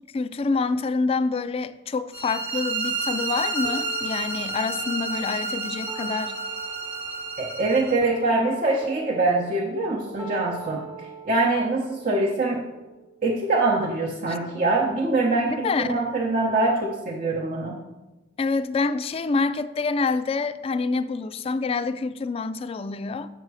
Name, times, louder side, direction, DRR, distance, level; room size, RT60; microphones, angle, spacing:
voice 1, 0.1-6.3 14.3-14.4 15.5-16.0 18.4-23.3, left 4 dB, 30° left, 0.3 m, -27 dB
sound 1, 2.1-8.0, right 3 dB, 85° right, 1.8 m, -30 dB
sound 2, 3.6-13.6, right 2 dB, 10° right, 1.0 m, -43 dB
voice 2, 7.4-12.6 13.2-17.8, right 2 dB, 45° right, 0.8 m, -24 dB
8.1 x 5.5 x 4.7 m
head